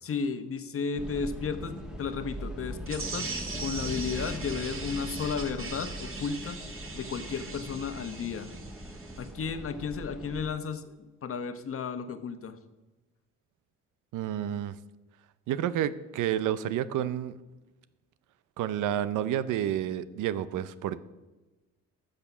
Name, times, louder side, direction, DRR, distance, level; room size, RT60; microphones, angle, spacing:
voice 1, 0.0-3.3 3.6-6.6 6.9-8.5 9.2-12.5, left 5 dB, 45° left, 9 dB, 1.1 m, -34 dB
sound 1, 0.9-10.5, equal, ahead, 1.8 m, -40 dB
sound 2, 2.9-9.3, right 3 dB, 45° right, 2.1 m, -40 dB
voice 2, 14.1-14.8 15.5-17.3 18.6-21.0, right 11 dB, 85° right, 16 dB, 0.7 m, -30 dB
12.5 x 6.7 x 6.1 m, 1.1 s
cardioid pair, 90°, 30 cm